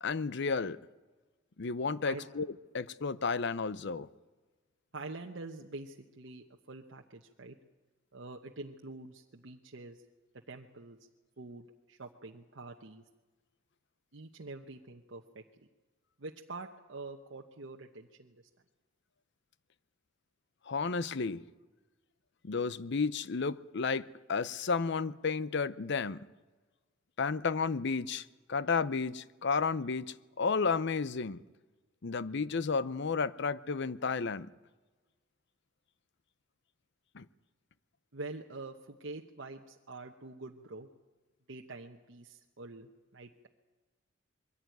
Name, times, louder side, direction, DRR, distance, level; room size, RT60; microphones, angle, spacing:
voice 1, 0.0-0.8 1.6-2.5 2.7-4.1 20.7-21.4 22.4-26.3 27.2-30.1 30.4-31.4 32.0-34.5 37.1-37.2, left 4 dB, 60° left, 0.7 m, -32 dB
voice 2, 4.9-7.6 8.1-10.0 10.5-11.0 11.4-13.0 14.1-15.4 16.2-18.4 38.1-40.9 41.5-43.5, right 3 dB, 65° right, 1.1 m, -46 dB
22.5 x 16.0 x 9.3 m
head